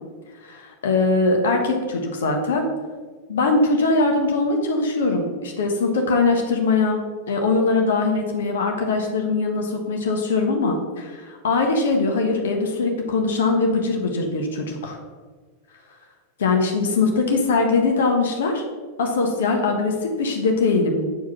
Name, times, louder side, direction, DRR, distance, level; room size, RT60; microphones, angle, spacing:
voice 1, 0.4-2.7 3.3-15.0 16.4-18.6 19.0-21.0, left 3 dB, 60° left, 2 dB, 1.3 m, -21 dB
9.1 x 4.8 x 5.8 m, 1.4 s
figure-of-eight pair, 90°, 0 cm